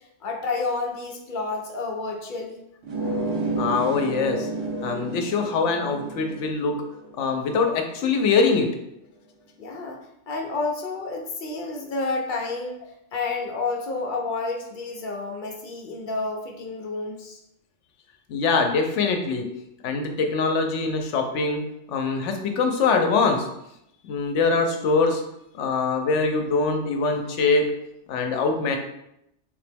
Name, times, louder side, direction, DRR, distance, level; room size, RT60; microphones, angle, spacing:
voice 1, 0.0-2.6 9.6-12.8 13.1-17.4, left 3 dB, 55° left, 1 dB, 0.6 m, -30 dB
sound 1, 2.8-8.1, right 2 dB, 85° right, 1.4 m, -31 dB
voice 2, 3.6-4.5 4.8-6.7 7.2-8.7 18.3-19.4 19.8-21.6 21.9-23.5 24.0-25.2 25.5-27.6 28.1-28.8, left 4 dB, 75° left, 4 dB, 0.9 m, -23 dB
3.5 x 2.9 x 3.4 m, 0.81 s
omnidirectional pair, 1.2 m